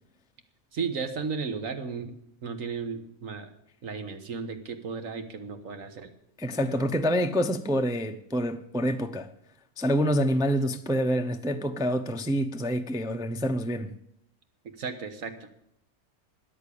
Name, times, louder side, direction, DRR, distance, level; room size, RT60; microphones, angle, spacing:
voice 1, 0.7-3.5 3.8-6.1 6.5-6.9 14.8-15.5, right 5 dB, 65° right, 1.7 m, -35 dB
voice 2, 6.4-9.3 9.8-13.9, equal, 5° right, 0.3 m, -27 dB
13.5 x 9.6 x 8.4 m
omnidirectional pair, 1.5 m